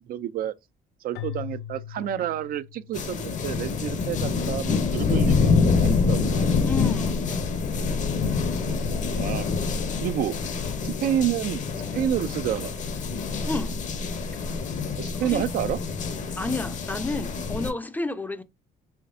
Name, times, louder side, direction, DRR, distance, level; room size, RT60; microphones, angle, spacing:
voice 1, 0.1-0.5 1.0-6.6 8.3-8.8 9.1-9.5 10.0-10.4 10.8-11.6 11.9-12.8 15.0-15.8, right 11 dB, 60° right, 0.4 m, -29 dB
Keyboard (musical), 1.1-3.4, left 11 dB, 70° left, 0.5 m, -39 dB
sound 1, 2.9-17.7, left 5 dB, 45° left, 0.8 m, -26 dB
voice 2, 6.6-7.4 13.5-13.8 15.2-15.4 16.4-18.4, left 3 dB, 10° left, 0.5 m, -30 dB
5.7 x 3.3 x 2.6 m
cardioid pair, 110°, 17 cm